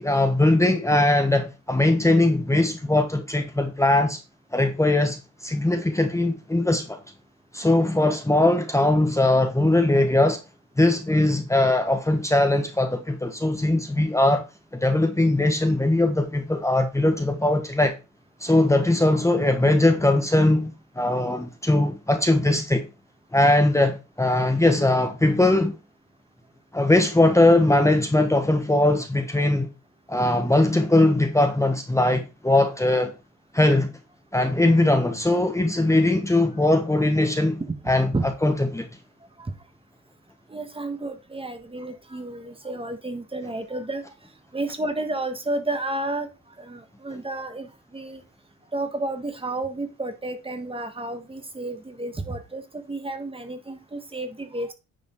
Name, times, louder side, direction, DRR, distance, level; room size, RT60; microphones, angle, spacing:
voice 1, 0.0-4.2 4.5-7.0 7.5-10.4 10.8-14.4 14.7-18.0 18.4-20.7 21.0-22.9 23.3-25.7 26.7-29.7 30.1-33.1 33.5-33.9 34.3-37.6 37.9-38.9, left 2 dB, 10° left, 1.2 m, -20 dB
voice 2, 37.8-38.3 39.4-39.5 40.5-44.1 44.5-46.3 46.6-48.2 48.7-54.7, right 2 dB, 20° right, 1.6 m, -31 dB
9.8 x 5.1 x 3.8 m
cardioid pair, 90°, 30 cm